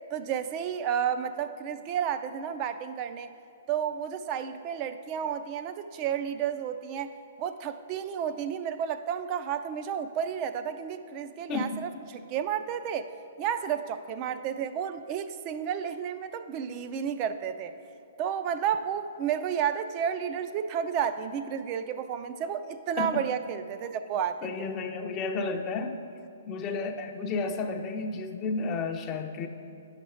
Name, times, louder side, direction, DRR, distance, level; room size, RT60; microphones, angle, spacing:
voice 1, 0.1-3.3 3.7-13.1 13.4-17.7 18.2-24.7, right 8 dB, 35° right, 10 dB, 0.5 m, -31 dB
voice 2, 11.5-11.8 23.0-23.2 24.4-26.0 26.5-29.5, left 4 dB, 30° left, 5 dB, 0.6 m, -32 dB
10.5 x 5.8 x 4.4 m, 2.5 s
hypercardioid pair, 125°, 0 cm